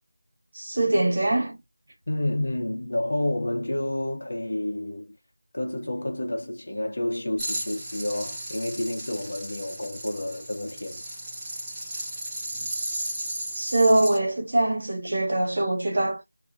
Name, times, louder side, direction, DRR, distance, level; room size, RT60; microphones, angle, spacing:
voice 1, 0.5-1.6 13.5-16.2, right 1 dB, 45° right, 0.9 m, -23 dB
voice 2, 2.1-5.1 5.5-11.0, left 1 dB, 55° left, 0.8 m, -29 dB
sound 1, 7.4-14.2, right 1 dB, 10° right, 0.7 m, -35 dB
2.3 x 2.1 x 2.6 m
figure-of-eight pair, 175°, 0 cm